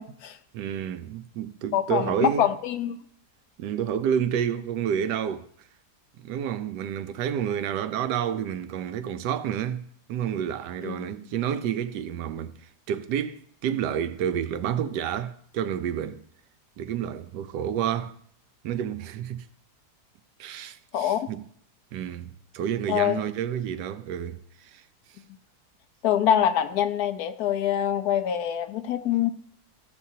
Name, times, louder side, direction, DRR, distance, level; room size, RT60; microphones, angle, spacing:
voice 1, 0.0-0.4 1.7-3.0 10.9-11.0 20.9-21.2 22.9-23.2 26.0-29.3, left 10 dB, 70° left, 1.1 m, -25 dB
voice 2, 0.5-2.5 3.6-5.5 6.2-16.2 16.8-18.2 18.6-19.5 20.4-21.4 21.9-24.8, right 9 dB, 85° right, 1.2 m, -29 dB
15.0 x 7.0 x 2.8 m
omnidirectional pair, 1.8 m